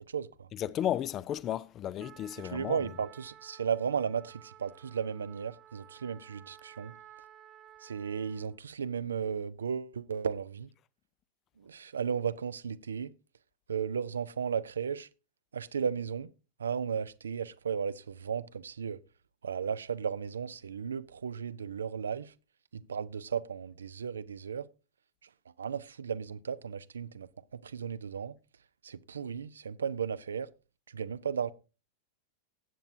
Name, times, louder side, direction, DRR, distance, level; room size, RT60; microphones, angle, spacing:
voice 1, 0.0-0.5 2.5-6.9 7.8-10.7 11.6-13.1 13.7-15.1 15.5-16.3 16.6-19.0 19.4-22.3 22.7-24.6 25.6-28.3 28.8-30.5 30.9-31.5, right 7 dB, 70° right, 0.5 m, -35 dB
voice 2, 0.5-2.8, left 11 dB, 30° left, 0.5 m, -33 dB
Trumpet, 2.0-8.6, right 11 dB, 30° right, 1.1 m, -54 dB
18.5 x 7.9 x 2.6 m
figure-of-eight pair, 90°, 0 cm